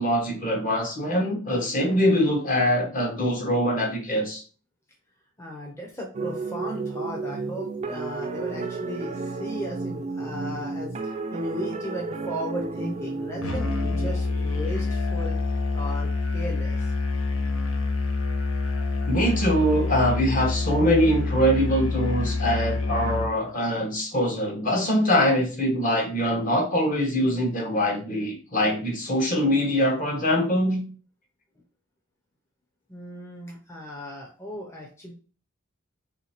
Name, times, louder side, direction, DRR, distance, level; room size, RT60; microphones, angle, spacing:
voice 1, 0.0-4.4 19.1-30.8, equal, 40° left, 1 dB, 1.1 m, -23 dB
voice 2, 5.4-10.9 11.3-16.9 32.9-35.1, equal, 15° left, -2 dB, 0.7 m, -36 dB
sound 1, 6.1-15.4, right 3 dB, 30° right, 0.3 m, -33 dB
Musical instrument, 13.4-23.3, left 3 dB, 70° left, 0.7 m, -27 dB
3.2 x 2.8 x 4.3 m, 0.38 s
head